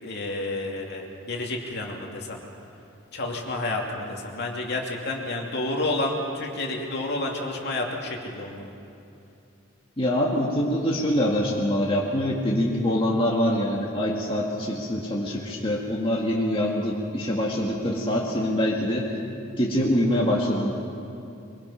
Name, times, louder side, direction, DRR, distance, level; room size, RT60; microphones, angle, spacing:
voice 1, 0.0-2.4 3.1-8.7, left 2 dB, 50° left, 0 dB, 2.8 m, -30 dB
voice 2, 10.0-19.1 19.6-20.7, left 1 dB, 25° left, -4 dB, 2.0 m, -24 dB
23.5 x 23.5 x 5.8 m, 2.6 s
head